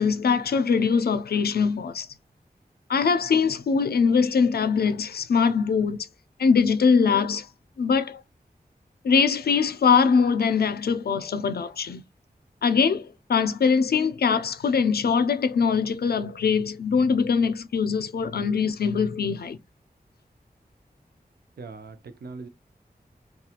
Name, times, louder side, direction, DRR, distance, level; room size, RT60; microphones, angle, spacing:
voice 1, 0.0-2.1 2.9-6.1 6.4-7.5 7.8-8.2 9.0-12.0 12.6-19.6, left 5 dB, 80° left, 0.4 m, -22 dB
voice 2, 21.6-22.5, right 4 dB, 85° right, 0.5 m, -40 dB
2.8 x 2.3 x 2.4 m
wide cardioid pair, 80°, 16 cm